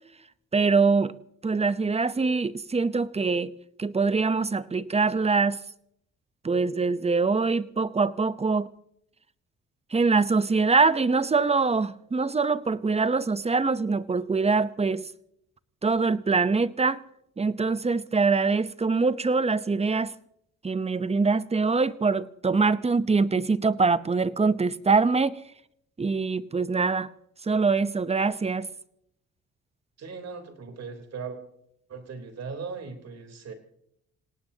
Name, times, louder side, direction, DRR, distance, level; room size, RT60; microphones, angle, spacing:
voice 1, 0.5-1.1 1.4-3.5 3.8-5.6 6.4-8.7 9.9-15.1 15.8-17.0 17.4-20.1 20.6-25.4 26.0-27.1 27.4-28.7, right 4 dB, 20° right, 0.8 m, -24 dB
voice 2, 30.0-31.4 31.9-33.5, right 5 dB, 60° right, 3.6 m, -38 dB
27.0 x 18.0 x 2.9 m
cardioid pair, 90°, 30 cm